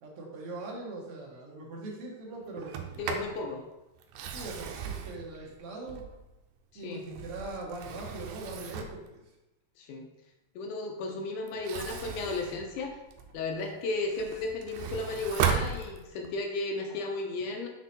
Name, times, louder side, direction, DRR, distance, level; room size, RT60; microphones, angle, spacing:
voice 1, 0.0-3.0 4.3-6.0 6.7-9.2, right 2 dB, 60° right, -2 dB, 1.6 m, -41 dB
Sliding door, 2.6-3.4 4.0-6.4 6.9-9.1 11.5-13.4 13.9-16.4, right 6 dB, 85° right, 2.3 m, -36 dB
voice 2, 3.0-3.6 6.7-7.1 9.8-10.1 10.6-13.0 13.3-17.7, left 3 dB, 80° left, 2 dB, 1.9 m, -34 dB
6.2 x 4.0 x 4.1 m, 1.0 s
omnidirectional pair, 4.0 m